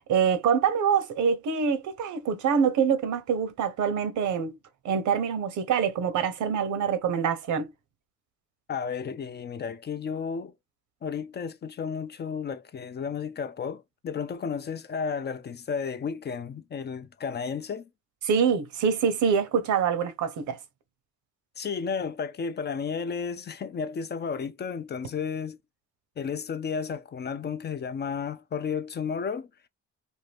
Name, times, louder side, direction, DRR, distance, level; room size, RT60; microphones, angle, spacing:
voice 1, 0.1-4.6 4.8-7.7 18.2-20.6, right 7 dB, 75° right, 0.8 m, -25 dB
voice 2, 8.7-10.5 11.0-17.9 21.6-25.6 26.2-29.5, left 6 dB, 35° left, 0.4 m, -33 dB
2.6 x 2.5 x 3.3 m
cardioid pair, 90°, 30 cm